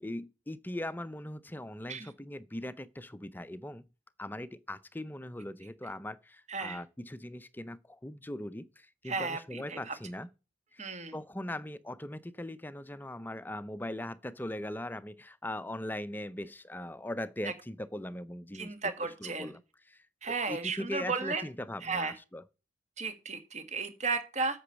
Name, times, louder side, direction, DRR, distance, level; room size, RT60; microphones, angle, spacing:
voice 1, 0.0-3.8 4.2-10.3 10.7-18.7 19.2-19.6 19.9-20.1 20.5-22.4, left 1 dB, 10° left, 0.5 m, -40 dB
voice 2, 9.0-9.9 10.8-11.1 18.5-19.5 20.2-21.4 21.8-22.1 23.0-24.6, right 4 dB, 35° right, 1.7 m, -34 dB
8.2 x 6.0 x 6.9 m
head